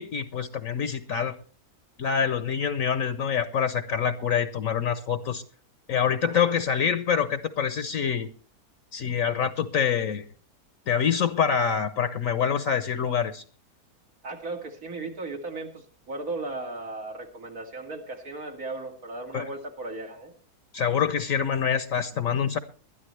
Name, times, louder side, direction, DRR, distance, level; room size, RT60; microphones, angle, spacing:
voice 1, 0.0-1.3 2.0-5.4 5.9-8.3 8.9-10.2 10.9-13.4 19.3-19.5 20.7-22.6, left 7 dB, 60° left, 12 dB, 1.1 m, -26 dB
voice 2, 14.2-20.3, right 2 dB, 65° right, 2 dB, 2.8 m, -36 dB
21.5 x 12.0 x 3.2 m, 0.39 s
omnidirectional pair, 1.7 m